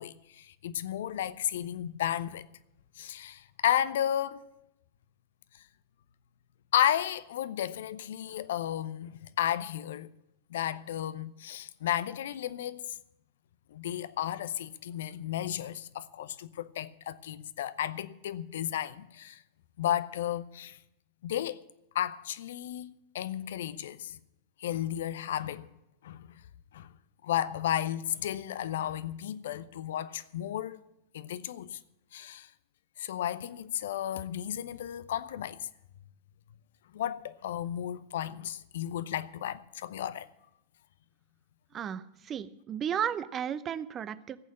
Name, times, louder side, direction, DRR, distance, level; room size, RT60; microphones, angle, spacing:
voice 1, 0.0-2.4 3.0-4.4 6.7-10.1 10.5-12.8 13.7-19.4 19.8-20.8 21.2-21.6 21.9-24.2 24.6-25.7 26.0-26.2 26.7-26.9 27.2-30.8 31.1-31.8 32.1-32.5 33.0-35.6 36.9-40.3, left 11 dB, 60° left, 0.7 m, -33 dB
voice 2, 41.7-44.4, right 9 dB, 25° right, 0.7 m, -34 dB
15.0 x 8.5 x 8.5 m
figure-of-eight pair, 90°, 0 cm